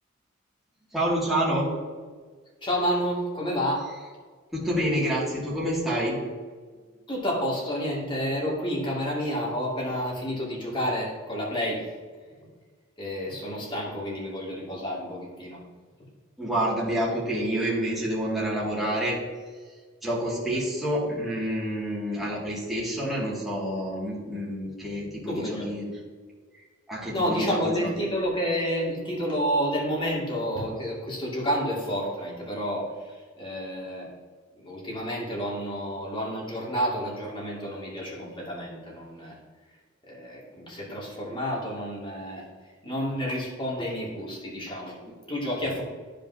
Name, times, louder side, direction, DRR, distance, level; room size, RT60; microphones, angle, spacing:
voice 1, 0.9-1.7 4.5-6.2 16.4-19.2 20.0-25.9 26.9-27.9 45.1-45.2, equal, ahead, -8 dB, 2.2 m, -28 dB
voice 2, 2.6-3.8 7.1-11.8 13.0-15.6 25.3-25.7 27.1-34.1 34.6-39.4 40.1-42.4 42.8-45.0 45.3-45.8, equal, 25° left, -4 dB, 2.3 m, -30 dB
13.5 x 5.1 x 2.8 m, 1.5 s
head